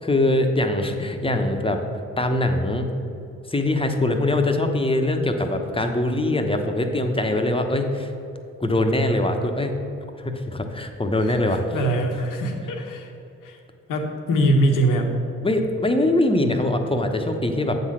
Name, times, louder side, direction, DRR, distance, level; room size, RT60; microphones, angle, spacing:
voice 1, 0.0-1.8 2.2-2.9 3.5-8.1 8.6-9.7 10.2-11.6 15.4-17.8, left 1 dB, 15° left, 5 dB, 1.0 m, -22 dB
voice 2, 11.2-13.1 13.4-13.6 13.9-15.2, right 1 dB, 70° left, 3 dB, 1.1 m, -23 dB
7.9 x 4.1 x 6.2 m, 2.8 s
hypercardioid pair, 45°, 33 cm